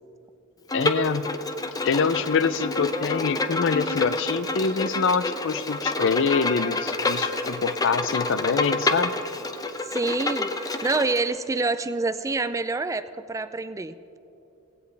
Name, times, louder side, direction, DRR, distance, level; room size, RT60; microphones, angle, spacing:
voice 1, 0.7-1.3 1.8-9.1, left 5 dB, 60° left, 14 dB, 0.5 m, -25 dB
Bowed string instrument, 0.7-11.2, left 2 dB, 20° left, 0.6 m, -28 dB
voice 2, 9.8-14.0, right 3 dB, 15° right, 12 dB, 0.3 m, -27 dB
17.5 x 16.0 x 3.3 m, 2.8 s
head